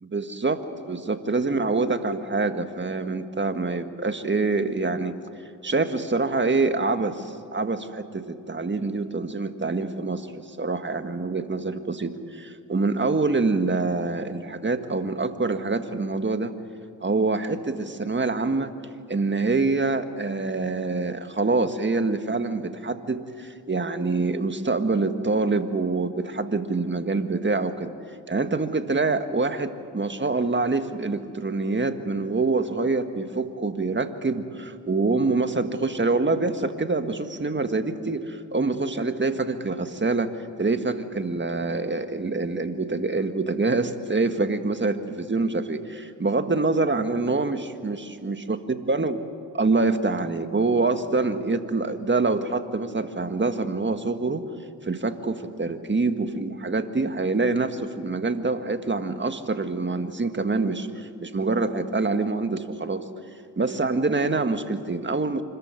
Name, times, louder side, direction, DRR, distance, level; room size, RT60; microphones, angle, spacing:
voice 1, 0.0-5.2 5.6-16.5 17.0-18.7 19.1-27.9 28.3-48.6 48.9-49.2 49.6-54.4 54.8-63.1 63.6-65.4, right 3 dB, 25° right, 9 dB, 1.7 m, -25 dB
26.0 x 14.5 x 9.7 m, 2.3 s
supercardioid pair, 55°, 44 cm